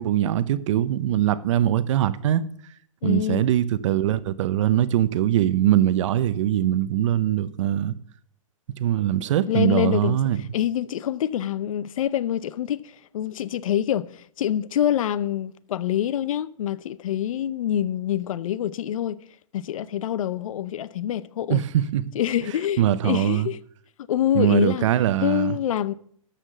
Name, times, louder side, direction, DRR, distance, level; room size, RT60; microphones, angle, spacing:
voice 1, 0.0-2.4 3.0-7.9 8.8-10.4 21.5-22.1 22.8-23.5 24.3-25.5, right 12 dB, 65° right, 0.8 m, -22 dB
voice 2, 3.0-3.5 9.5-19.2 19.5-21.6 22.1-23.6 24.0-24.9 25.2-25.9, left 10 dB, 75° left, 0.7 m, -26 dB
13.0 x 5.8 x 6.8 m
hypercardioid pair, 145°, 17 cm